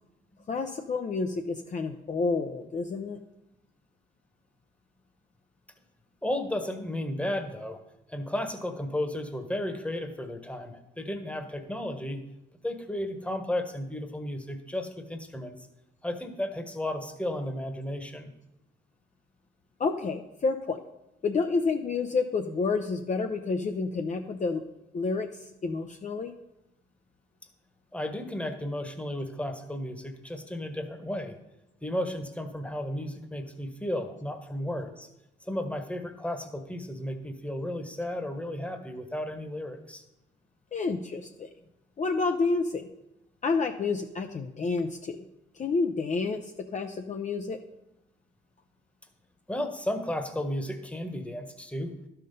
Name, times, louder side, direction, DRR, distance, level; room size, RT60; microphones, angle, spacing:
voice 1, 0.5-3.2 19.8-20.8 21.2-24.6 24.9-26.3 40.7-41.5 42.0-42.9 43.4-45.2 45.5-47.6, left 4 dB, 35° left, 5 dB, 0.6 m, -29 dB
voice 2, 6.2-7.8 8.1-12.2 12.6-15.5 16.0-18.3 27.9-31.3 31.8-35.1 35.4-40.0 49.5-51.9, left 1 dB, 5° left, 6 dB, 1.2 m, -33 dB
12.0 x 5.7 x 5.4 m, 0.90 s
cardioid pair, 90°, 20 cm